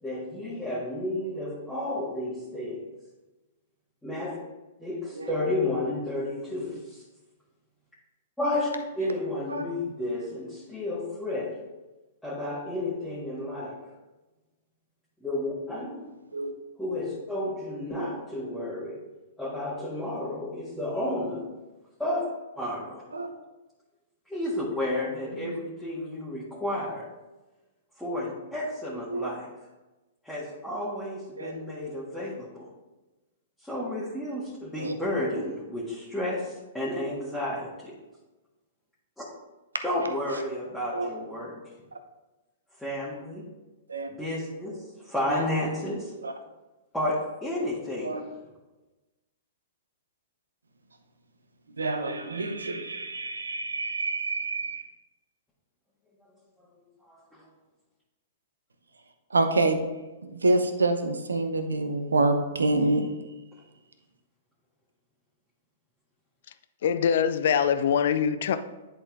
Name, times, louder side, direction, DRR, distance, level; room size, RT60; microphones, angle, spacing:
voice 1, 0.0-2.8 4.0-4.4 4.8-7.0 8.4-8.7 8.9-11.6 12.2-13.9 15.2-16.0 16.7-19.0 19.4-21.5 22.0-22.3 22.6-23.0 24.3-27.1 28.0-29.5 30.2-32.6 33.6-37.9 39.2-39.3 39.8-41.6 42.8-43.4 44.1-46.1 46.9-48.2 57.1-57.4, left 1 dB, 5° left, 1.7 m, -31 dB
voice 2, 51.8-54.9 59.3-59.8 60.2-63.1, right 2 dB, 85° right, 0.8 m, -27 dB
voice 3, 66.8-68.6, left 7 dB, 60° left, 0.5 m, -23 dB
10.0 x 4.3 x 3.5 m
hypercardioid pair, 115°, 0 cm